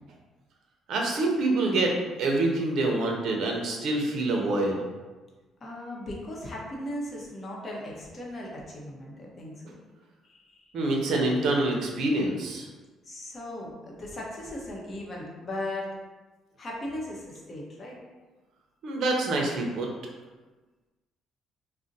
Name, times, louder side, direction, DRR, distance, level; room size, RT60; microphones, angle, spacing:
voice 1, 0.9-1.9 2.2-4.8 10.7-12.7 18.8-19.9, right 2 dB, 65° right, 0 dB, 0.6 m, -26 dB
voice 2, 5.6-9.8 10.2-11.0 13.0-15.9 16.6-18.0, left 1 dB, 35° left, -3 dB, 0.8 m, -38 dB
2.5 x 2.1 x 3.9 m, 1.2 s
cardioid pair, 115°, 0 cm